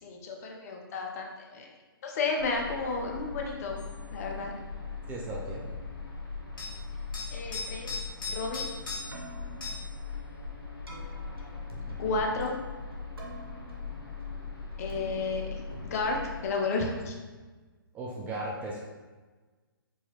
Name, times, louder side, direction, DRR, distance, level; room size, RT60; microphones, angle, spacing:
voice 1, 0.0-1.7 2.0-3.8 4.1-4.5 7.3-7.9 8.3-8.7 12.0-12.5 14.8-17.1, left 3 dB, 40° left, 1 dB, 0.7 m, -32 dB
sound 1, 2.4-16.5, left 4 dB, 90° left, 1.0 m, -40 dB
sound 2, 3.8-4.0 6.6-6.8 7.1-9.3 9.6-9.9 12.4-12.5, left 3 dB, 60° left, 1.5 m, -38 dB
voice 2, 5.1-5.8 11.9-12.2 17.9-18.8, right 2 dB, 15° right, -3 dB, 0.3 m, -37 dB
Keyboard (musical), 8.9-17.1, right 2 dB, 85° right, 0.9 m, -50 dB
4.6 x 2.7 x 3.0 m, 1.3 s
hypercardioid pair, 140°, 12 cm